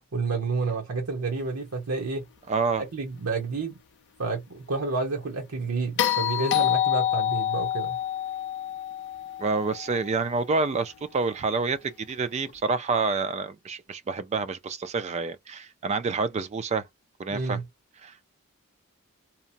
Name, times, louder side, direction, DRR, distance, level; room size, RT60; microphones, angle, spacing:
voice 1, 0.1-2.2 2.9-3.8 4.2-8.0 17.3-17.6, right 3 dB, 75° right, 0.8 m, -29 dB
voice 2, 2.5-2.8 9.4-16.9 17.2-17.6 18.0-18.2, right 4 dB, 30° right, 0.3 m, -28 dB
sound 1, 6.0-10.2 12.5-12.6, left 11 dB, 50° left, 0.4 m, -27 dB
2.8 x 2.1 x 2.6 m
head